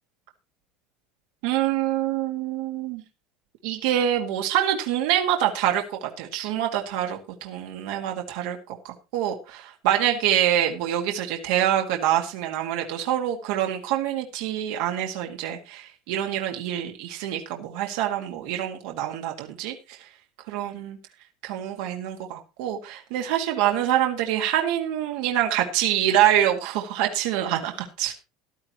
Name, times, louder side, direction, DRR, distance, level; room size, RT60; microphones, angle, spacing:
voice 1, 1.4-3.0 3.6-20.1 20.5-21.0 21.4-28.1, right 11 dB, 65° right, 3 dB, 1.9 m, -26 dB
14.0 x 12.0 x 3.0 m, 0.28 s
cardioid pair, 170°, 0 cm